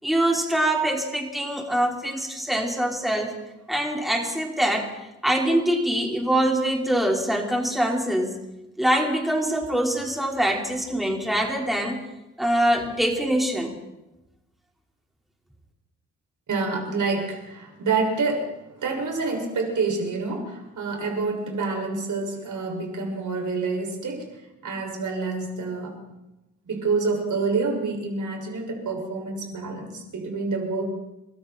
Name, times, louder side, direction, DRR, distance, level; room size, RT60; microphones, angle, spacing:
voice 1, 0.0-3.3 3.7-4.9 5.2-8.4 8.8-12.0 12.4-13.8, right 1 dB, ahead, 0 dB, 5.2 m, -24 dB
voice 2, 16.5-24.3 24.6-26.0 26.7-30.9, right 4 dB, 50° right, 2 dB, 7.0 m, -27 dB
30.0 x 22.5 x 4.7 m, 0.96 s
hypercardioid pair, 45°, 38 cm